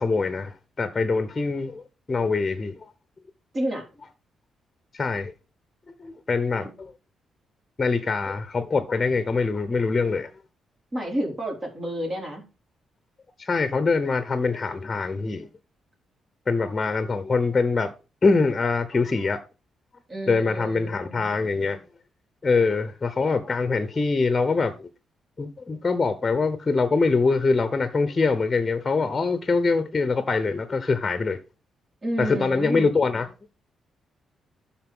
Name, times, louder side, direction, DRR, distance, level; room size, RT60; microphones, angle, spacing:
voice 1, 0.0-1.8 2.1-2.9 4.9-5.3 6.0-6.9 7.8-10.3 13.4-15.5 16.5-17.9 18.2-19.4 20.3-21.8 22.4-24.9 25.4-31.4 32.2-33.3, left 4 dB, 30° left, 0.9 m, -24 dB
voice 2, 3.5-3.9 10.9-12.4 20.1-21.3 32.0-32.9, right 1 dB, 35° right, 4.1 m, -30 dB
12.0 x 4.2 x 3.7 m
cardioid pair, 70°, 0 cm